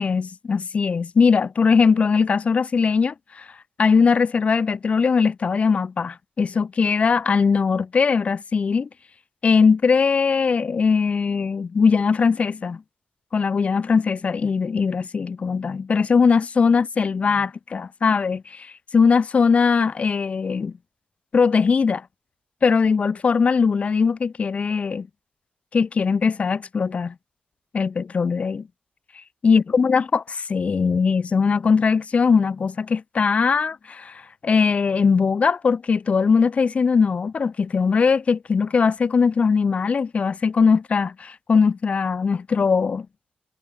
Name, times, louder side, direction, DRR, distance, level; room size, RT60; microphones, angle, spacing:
voice 1, 0.0-3.5 3.8-8.9 9.4-12.8 13.3-20.7 21.3-22.0 22.6-25.1 25.7-27.1 27.7-28.7 29.4-43.1, left 5 dB, 40° left, 1.2 m, -20 dB
wide cardioid pair, 140°, 3 cm